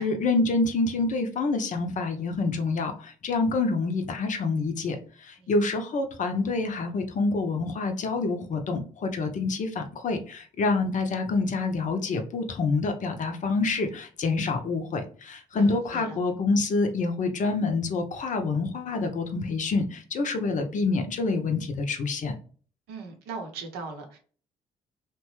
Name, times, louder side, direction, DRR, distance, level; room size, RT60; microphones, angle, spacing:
voice 1, 0.0-22.3, left 3 dB, 45° left, 6 dB, 0.6 m, -27 dB
voice 2, 15.5-16.2 22.9-24.2, right 4 dB, 70° right, 3 dB, 0.7 m, -39 dB
2.9 x 2.2 x 3.0 m, 0.41 s
figure-of-eight pair, 40°, 18 cm